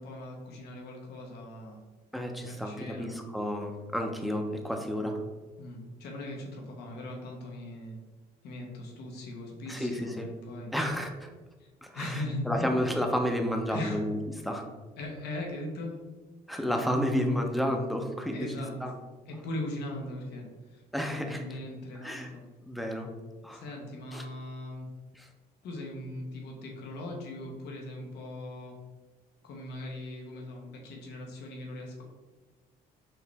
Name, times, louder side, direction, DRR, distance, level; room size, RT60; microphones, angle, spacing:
voice 1, 0.0-1.8 2.4-3.1 5.0-5.1 5.6-8.0 8.4-10.7 11.6-11.7 11.9-12.8 13.7-14.0 15.0-16.0 18.3-18.7 19.3-20.8 21.2-22.4 23.5-24.9 25.6-28.7 29.4-32.0, left 1 dB, 75° left, 0 dB, 1.1 m, -39 dB
voice 2, 2.1-5.2 9.7-10.3 10.7-11.3 11.8-14.6 16.5-18.5 18.8-18.9 20.9-21.4 22.0-22.3 22.7-23.1 23.4-23.6 24.1-24.2 25.2-25.3, equal, ahead, 3 dB, 0.6 m, -31 dB
4.7 x 3.1 x 3.4 m, 1.3 s
cardioid pair, 110°, 17 cm